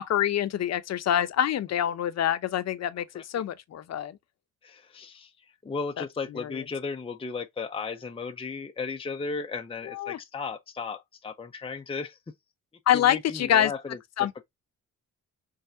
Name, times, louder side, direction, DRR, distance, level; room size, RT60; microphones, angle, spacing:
voice 1, 0.0-4.2 6.0-6.1 6.4-6.5 9.9-10.2 12.9-13.7 14.2-14.4, left 11 dB, 60° left, 0.8 m, -26 dB
voice 2, 4.6-12.2 12.9-14.0, left 4 dB, 20° left, 0.7 m, -35 dB
5.6 x 3.5 x 2.7 m
cardioid pair, 90°, 30 cm